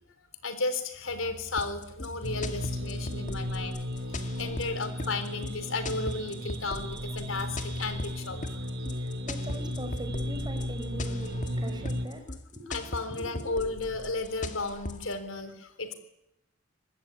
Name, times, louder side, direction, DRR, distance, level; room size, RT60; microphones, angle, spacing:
voice 1, 0.4-3.8 4.1-8.6 12.7-15.9, left 3 dB, 85° left, 10 dB, 3.9 m, -34 dB
sound 1, 1.6-15.1, left 2 dB, 40° left, 2.1 m, -39 dB
sound 2, 2.2-12.1, equal, 60° right, 3.0 m, -35 dB
voice 2, 9.0-12.2 12.5-13.4, equal, 20° right, 6 dB, 5.2 m, -41 dB
24.5 x 20.0 x 9.8 m, 0.83 s
head